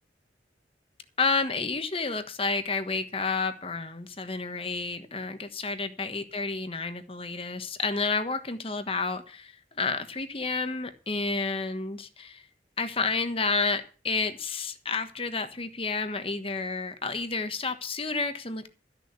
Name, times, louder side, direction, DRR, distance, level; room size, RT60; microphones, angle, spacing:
voice 1, 1.2-12.4 12.8-18.7, left 4 dB, 30° left, 9 dB, 1.3 m, -30 dB
13.5 x 6.8 x 8.2 m, 0.38 s
head